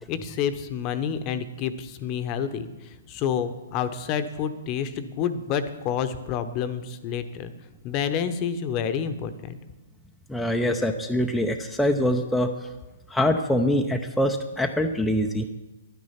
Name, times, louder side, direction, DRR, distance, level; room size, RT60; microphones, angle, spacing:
voice 1, 0.1-2.7 3.1-7.5 7.8-9.6, left 8 dB, 35° left, 10 dB, 0.9 m, -28 dB
voice 2, 10.3-12.5 13.1-15.5, left 1 dB, 5° left, 2 dB, 0.6 m, -24 dB
11.5 x 9.5 x 5.8 m, 1.1 s
hypercardioid pair, 130°, 0 cm